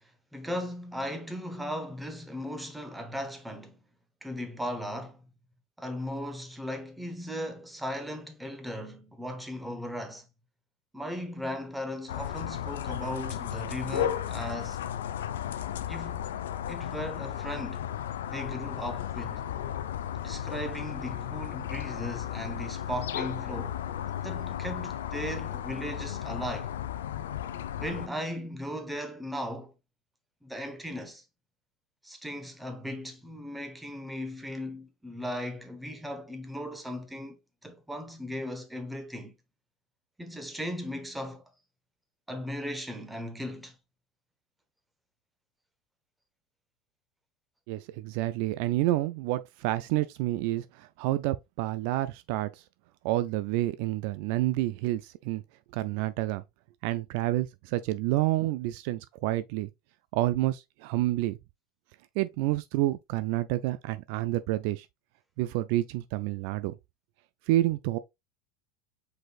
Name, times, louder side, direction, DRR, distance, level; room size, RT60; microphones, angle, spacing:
voice 1, 0.3-3.8 4.2-5.2 5.8-10.3 10.9-14.8 15.8-16.3 16.7-17.8 18.3-19.5 20.2-23.8 24.2-26.7 27.7-29.7 30.4-31.2 32.0-37.4 37.6-39.3 40.2-41.4 42.3-43.7, equal, 5° right, 1.2 m, -37 dB
sound 1, 12.1-28.1, left 10 dB, 80° left, 0.5 m, -34 dB
voice 2, 47.7-52.5 53.0-55.4 55.7-56.4 56.8-59.7 60.1-61.4 62.2-64.9 65.4-66.8 67.5-68.0, right 16 dB, 65° right, 0.3 m, -29 dB
5.0 x 4.1 x 2.4 m
hypercardioid pair, 95°, 0 cm